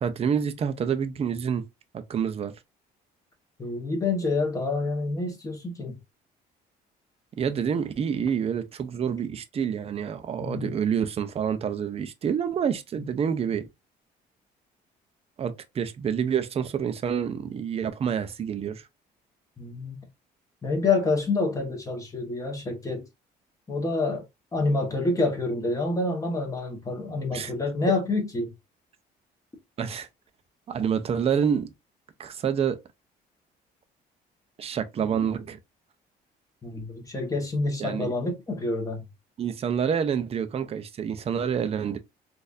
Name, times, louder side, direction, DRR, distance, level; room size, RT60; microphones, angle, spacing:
voice 1, 0.0-1.6 1.9-2.5 7.4-13.7 15.4-18.8 27.3-27.5 29.8-30.1 30.7-31.7 32.2-32.8 34.6-35.6 37.8-38.1 39.4-42.0, right 7 dB, 35° right, 0.6 m, -27 dB
voice 2, 3.6-5.9 10.4-10.7 19.6-20.0 20.6-23.1 23.7-24.2 24.5-28.5 36.6-39.0, left 3 dB, 20° left, 1.2 m, -27 dB
4.1 x 2.6 x 2.5 m
cardioid pair, 110°, 17 cm